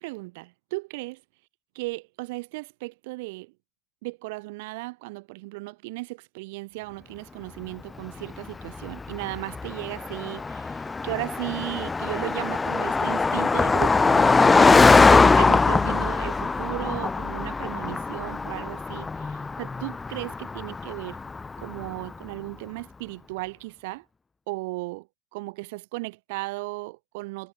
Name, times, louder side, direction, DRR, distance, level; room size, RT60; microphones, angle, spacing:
voice 1, 0.0-1.2 1.8-3.5 4.0-21.2 21.6-24.0 24.5-25.1 25.3-27.5, right 24 dB, 85° right, 2.0 m, -35 dB
Car passing by, 8.3-22.0, left 4 dB, 15° left, 0.8 m, -22 dB
cardioid pair, 140°, 0 cm